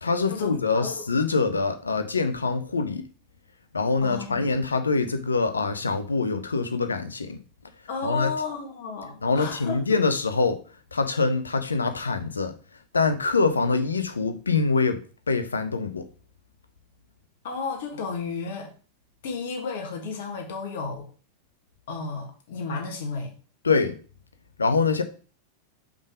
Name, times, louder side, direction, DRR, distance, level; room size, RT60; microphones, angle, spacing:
voice 1, 0.0-3.0 3.7-7.4 8.0-8.3 9.2-10.6 10.9-12.5 12.9-15.0 15.3-16.1 23.6-24.0 24.6-25.0, left 4 dB, 75° left, 0.7 m, -24 dB
voice 2, 4.0-4.5 7.9-9.8 17.4-18.7 19.2-21.1 21.9-23.3, left 4 dB, 55° left, 1.4 m, -33 dB
5.3 x 3.8 x 5.0 m
figure-of-eight pair, 90°, 0 cm